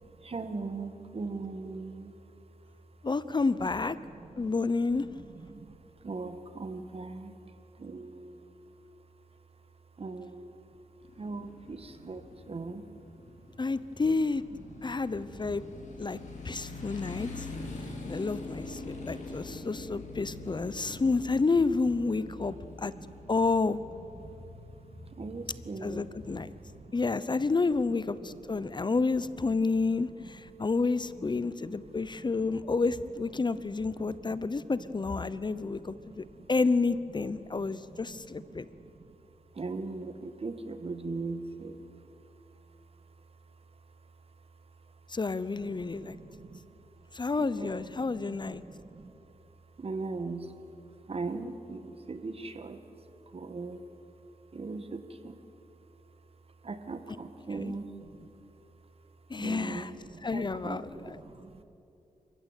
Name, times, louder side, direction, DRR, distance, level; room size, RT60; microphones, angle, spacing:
voice 1, 0.0-3.1 3.6-4.5 5.0-8.7 10.0-10.7 11.2-12.9 14.6-15.0 15.3-20.0 20.3-21.0 21.7-21.8 22.2-23.3 24.2-24.5 25.0-27.0 27.3-27.6 27.9-28.8 29.4-30.6 31.1-32.8 33.5-36.5 37.2-39.2 39.5-45.2 45.6-49.2 49.5-50.6 50.9-53.9 54.5-55.4 56.5-58.3 59.3-61.6, right 3 dB, 45° right, 9 dB, 1.9 m, -43 dB
voice 2, 3.0-4.0 4.4-5.1 13.6-14.4 14.8-15.6 16.0-16.2 16.4-17.5 18.0-22.9 23.3-23.8 25.8-26.5 26.9-38.7 45.1-46.2 47.1-48.6 57.5-57.7 59.3-59.9 60.2-61.2, left 3 dB, 35° left, 15 dB, 0.8 m, -30 dB
Motorcycle, 11.0-26.8, left 2 dB, 65° left, 5.3 m, -44 dB
29.0 x 16.0 x 9.1 m, 2.9 s
cardioid pair, 75°, 14 cm